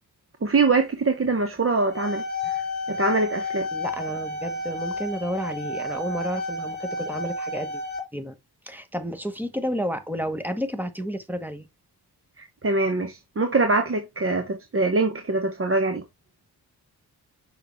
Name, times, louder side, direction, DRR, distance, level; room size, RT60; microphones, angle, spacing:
voice 1, 0.4-2.5 2.9-3.7 12.4-16.0, right 3 dB, 35° right, 1.1 m, -23 dB
sound 1, 1.8-8.0, left 2 dB, 25° left, 2.6 m, -31 dB
voice 2, 3.7-7.8 8.1-8.3 8.7-11.7, equal, 5° right, 1.2 m, -31 dB
6.6 x 6.0 x 3.1 m
wide cardioid pair, 135°, 38 cm